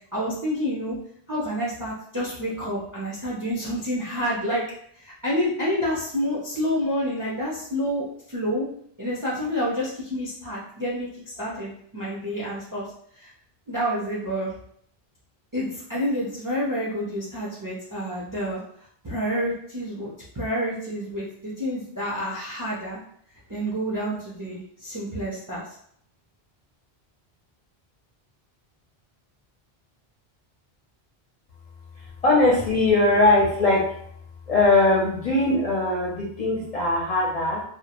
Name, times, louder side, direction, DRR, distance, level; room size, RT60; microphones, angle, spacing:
voice 1, 0.1-1.0 1.3-4.6 4.9-8.7 9.0-12.9 13.2-13.3 13.7-14.5 15.5-18.6 19.0-23.0 23.5-25.6, equal, 30° right, -5 dB, 0.4 m, -28 dB
voice 2, 32.0-33.9 34.5-37.6, left 2 dB, 50° left, -4 dB, 0.5 m, -20 dB
2.3 x 2.0 x 2.8 m, 0.65 s
omnidirectional pair, 1.1 m